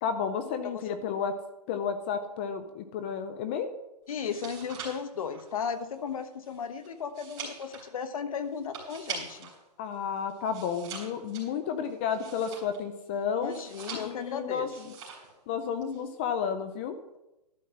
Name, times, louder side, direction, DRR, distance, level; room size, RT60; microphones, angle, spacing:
voice 1, 0.0-1.3 1.7-3.7 9.8-13.5 13.9-14.9 15.5-17.0, left 7 dB, 15° left, 9 dB, 0.4 m, -32 dB
voice 2, 4.1-9.5 13.4-14.9, left 7 dB, 55° left, 9 dB, 1.3 m, -35 dB
sound 1, 4.1-9.6 9.9-13.0 13.4-14.3 14.7-15.3 15.6-16.0, right 5 dB, 20° right, 3.8 m, -43 dB
12.0 x 5.5 x 7.5 m, 0.92 s
hypercardioid pair, 165°, 21 cm